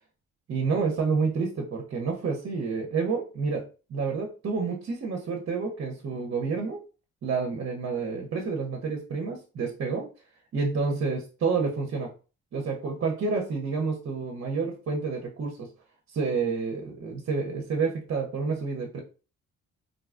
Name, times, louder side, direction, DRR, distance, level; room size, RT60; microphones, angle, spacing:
voice 1, 0.5-3.6 3.9-6.8 7.2-10.1 10.5-12.1 12.5-15.7 16.1-19.0, right 4 dB, 45° right, 1 dB, 0.8 m, -29 dB
3.8 x 2.3 x 2.4 m, 0.34 s
cardioid pair, 90°, 30 cm